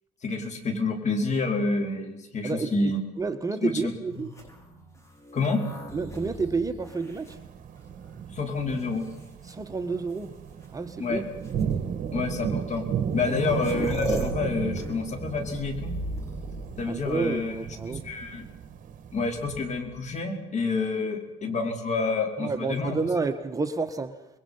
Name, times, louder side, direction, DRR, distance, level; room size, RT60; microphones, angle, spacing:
voice 1, 0.2-3.0 3.6-3.9 5.3-5.6 8.3-9.1 11.0-11.2 12.1-12.8 13.1-16.0 16.8-17.6 17.9-18.5 19.1-23.0, left 3 dB, 45° left, 5.0 m, -28 dB
voice 2, 2.4-2.9 3.2-4.3 5.9-7.4 9.5-10.3 10.7-11.2 13.3-13.4 16.9-18.0 22.4-24.2, right 4 dB, 20° right, 1.5 m, -30 dB
sound 1, 4.3-8.1 8.8-9.5 10.6-10.7 11.4-11.6 12.8-12.9 13.0-17.5 19.4-20.1, equal, 15° left, 6.3 m, -37 dB
sound 2, 7.1-19.6, right 7 dB, 50° right, 2.0 m, -35 dB
28.0 x 21.5 x 5.7 m
cardioid pair, 110°, 17 cm